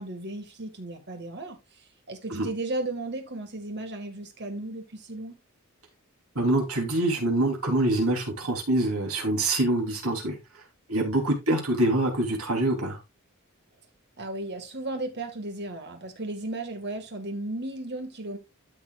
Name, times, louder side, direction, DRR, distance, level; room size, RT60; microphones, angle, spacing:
voice 1, 0.0-1.6 2.1-5.4 14.2-18.4, right 2 dB, 50° right, 2.0 m, -35 dB
voice 2, 6.3-10.4 10.9-13.0, right 1 dB, 75° right, 3.3 m, -25 dB
13.0 x 6.0 x 2.4 m
head